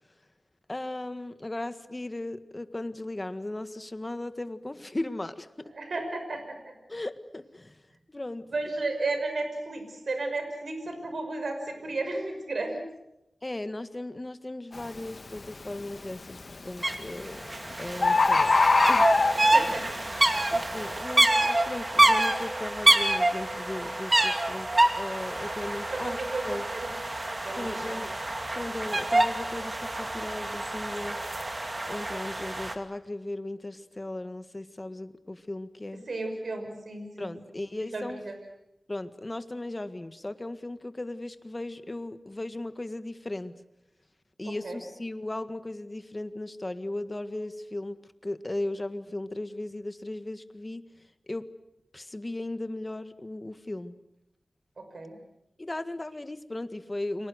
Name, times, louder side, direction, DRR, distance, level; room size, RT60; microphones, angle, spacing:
voice 1, 0.7-5.7 6.9-7.8 8.1-8.5 13.4-17.4 17.8-18.6 18.9-19.2 20.5-24.7 25.0-26.6 27.5-28.1 28.5-31.2 31.9-36.0 37.2-38.2 38.9-43.6 44.4-50.8 51.3-51.5 51.9-54.0 55.6-57.3, left 2 dB, 25° left, 10 dB, 1.7 m, -37 dB
voice 2, 5.7-6.7 8.5-12.8 19.5-19.8 25.9-26.9 27.4-28.1 36.1-38.3 44.4-44.8 54.8-55.2, right 2 dB, 70° right, 5 dB, 6.0 m, -34 dB
Bird, 14.7-15.0 15.5-16.0 17.0-17.1 17.4-17.5 17.7-17.8 18.0-19.7 20.3-20.4, left 3 dB, 50° left, 1.3 m, -21 dB
sound 1, 16.8-16.9 17.2-32.7, right 2 dB, 30° right, 2.6 m, -26 dB
30.0 x 25.0 x 6.5 m, 0.87 s
wide cardioid pair, 75°, 0 cm